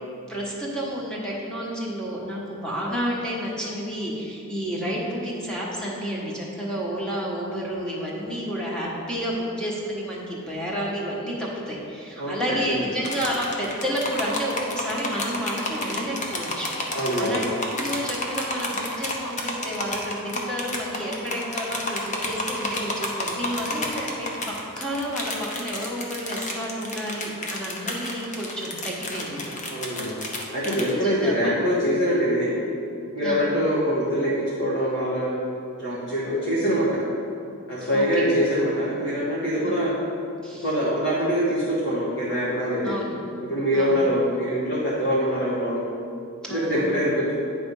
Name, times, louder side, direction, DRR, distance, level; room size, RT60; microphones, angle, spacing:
voice 1, 0.3-29.6 30.7-31.5 33.2-33.5 37.8-38.3 39.6-39.8 40.4-40.7 42.8-43.1 43.7-44.0 46.4-46.8, equal, 5° left, -5 dB, 1.2 m, -30 dB
sound 1, 13.0-30.9, left 2 dB, 35° left, 0.8 m, -31 dB
voice 2, 16.9-17.4 29.7-30.1 30.5-32.5 33.1-35.3 35.8-37.0 37.7-39.9 40.6-42.9 43.5-45.8 46.5-47.3, equal, 55° left, -9 dB, 1.5 m, -24 dB
9.1 x 3.4 x 5.4 m, 2.5 s
head